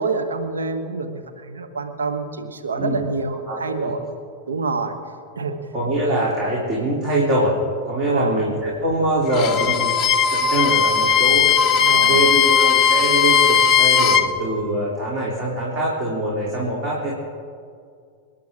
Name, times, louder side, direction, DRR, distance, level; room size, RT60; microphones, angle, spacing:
voice 1, 0.0-4.0 4.5-4.9 5.4-5.5 8.0-8.4 11.8-12.4, right 4 dB, 70° right, 7 dB, 1.3 m, -27 dB
voice 2, 3.5-3.9 5.7-7.6 7.8-9.9 10.3-11.5 12.1-17.1, right 1 dB, 35° right, -4 dB, 3.2 m, -23 dB
Bowed string instrument, 9.3-14.3, left 7 dB, 30° left, 0.9 m, -17 dB
26.5 x 10.0 x 3.7 m, 2.2 s
figure-of-eight pair, 90°, 0 cm